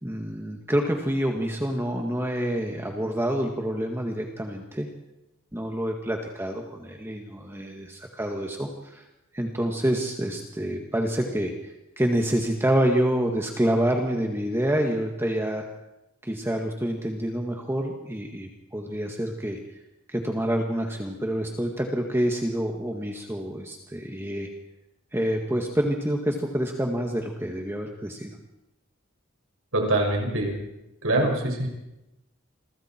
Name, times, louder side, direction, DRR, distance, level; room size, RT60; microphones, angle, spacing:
voice 1, 0.0-4.9 5.5-9.0 9.3-15.6 16.2-19.6 20.1-24.5 25.1-28.3, right 1 dB, 10° right, 2 dB, 1.8 m, -27 dB
voice 2, 29.7-30.5 31.0-31.7, right 1 dB, 85° right, 1 dB, 6.3 m, -24 dB
28.5 x 23.5 x 4.5 m, 0.94 s
head